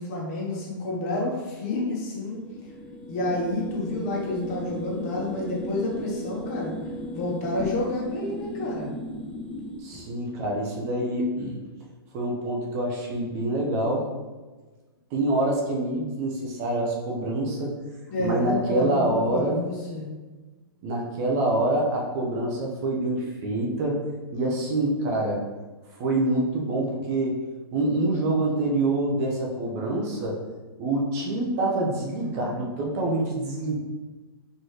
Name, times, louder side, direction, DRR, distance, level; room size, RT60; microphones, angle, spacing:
voice 1, 0.0-2.4 3.1-6.7 7.1-8.9 18.1-20.1, left 2 dB, 40° left, -3 dB, 1.2 m, -29 dB
sound 1, 2.2-9.8, left 1 dB, 10° left, 0.4 m, -36 dB
voice 2, 9.8-11.6 12.1-14.1 15.1-17.8 18.2-19.6 20.8-24.0 24.3-25.4 26.0-27.4 27.7-30.4 30.8-33.8, right 1 dB, 40° right, -1 dB, 0.8 m, -26 dB
4.4 x 3.1 x 3.2 m, 1.3 s
hypercardioid pair, 130°, 12 cm